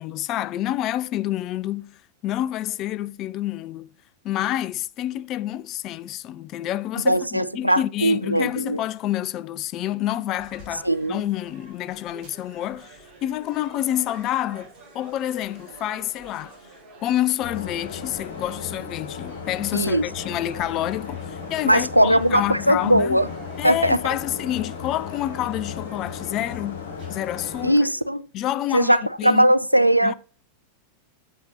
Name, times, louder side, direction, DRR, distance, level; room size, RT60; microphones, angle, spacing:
voice 1, 0.0-3.9 4.2-16.5 17.0-23.2 23.6-27.8 28.3-29.5 30.0-30.1, left 13 dB, 35° left, 0.4 m, -28 dB
voice 2, 7.1-8.8 10.8-11.2 19.7-20.0 21.7-23.3 23.6-24.0 27.6-28.3 28.7-30.1, right 1 dB, 90° right, 0.3 m, -19 dB
sound 1, 10.3-27.9, right 3 dB, 35° right, 4.5 m, -48 dB
sound 2, 17.4-27.7, left 6 dB, 55° left, 1.8 m, -35 dB
8.4 x 7.3 x 2.7 m
figure-of-eight pair, 90°, 0 cm